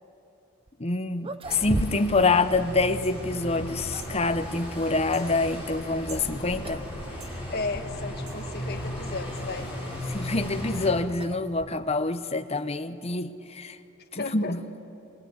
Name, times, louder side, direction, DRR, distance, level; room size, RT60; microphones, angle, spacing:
sound 1, 0.7-0.8 1.2-2.3 2.5-2.7 3.5-4.2 6.0-6.3 6.6-6.9 7.2-7.3 8.1-8.2 10.0-12.1, right 1 dB, 25° right, 0.7 m, -36 dB
voice 1, 0.8-6.8 10.1-13.8 14.1-14.6, left 3 dB, 30° left, 8 dB, 0.9 m, -26 dB
sound 2, 1.4-10.9, equal, 5° right, 6.3 m, -36 dB
sound 3, 3.0-3.2 4.0-4.2 5.1-5.3 6.1-6.3 7.2-7.4 8.3-8.4 9.4-9.5, right 3 dB, 60° right, 5.5 m, -45 dB
voice 2, 7.5-9.7 14.2-14.5, left 3 dB, 45° left, 5 dB, 1.7 m, -34 dB
25.0 x 21.5 x 9.8 m, 2.9 s
head